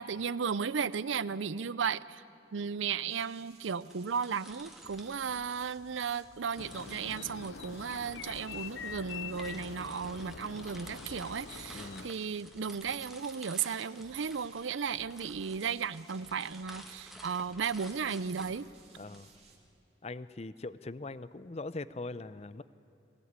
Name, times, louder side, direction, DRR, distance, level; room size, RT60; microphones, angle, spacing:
voice 1, 0.0-2.2 2.5-18.7, right 6 dB, 85° right, 18 dB, 0.6 m, -35 dB
sound 1, 3.1-19.6, right 3 dB, 35° right, 2.7 m, -60 dB
sound 2, 3.8-6.1 6.5-19.2, equal, ahead, 1.7 m, -53 dB
sound 3, 6.6-12.1, left 6 dB, 75° left, 0.6 m, -44 dB
voice 2, 11.7-12.1 19.0-19.3 20.0-22.6, left 2 dB, 35° left, 16 dB, 0.5 m, -41 dB
22.0 x 17.5 x 9.6 m, 2.7 s
head